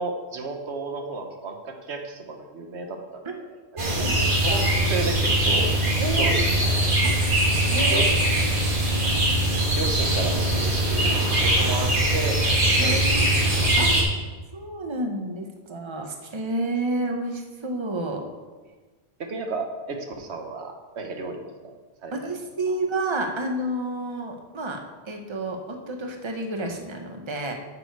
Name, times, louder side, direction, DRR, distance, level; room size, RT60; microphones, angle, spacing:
voice 1, 0.0-3.5 3.9-4.0 4.4-5.7 6.1-6.8 7.9-8.1 9.0-9.1 9.7-12.4 12.7-13.0 19.2-22.1, right 3 dB, 90° right, 4 dB, 1.3 m, -33 dB
voice 2, 3.8-4.7 6.0-6.4 7.0-7.2 7.7-8.6 11.0-11.2 12.8-13.5 13.8-14.0 14.5-18.2 22.1-24.8 25.1-27.5, right 2 dB, 30° right, 3 dB, 1.0 m, -30 dB
sound 1, 3.8-14.0, right 1 dB, 50° right, 1.9 m, -21 dB
8.8 x 6.9 x 4.7 m, 1.3 s
omnidirectional pair, 1.1 m